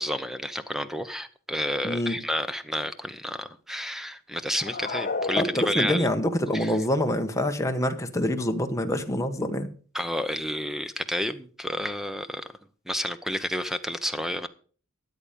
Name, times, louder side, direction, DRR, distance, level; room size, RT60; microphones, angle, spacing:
voice 1, 0.0-6.1 6.5-6.8 9.9-12.5 12.9-14.5, equal, ahead, 0.8 m, -30 dB
voice 2, 1.8-2.2 5.3-9.7, left 1 dB, 15° left, 1.2 m, -26 dB
sound 1, 4.5-6.2, left 3 dB, 45° left, 1.1 m, -32 dB
13.0 x 8.9 x 5.3 m
head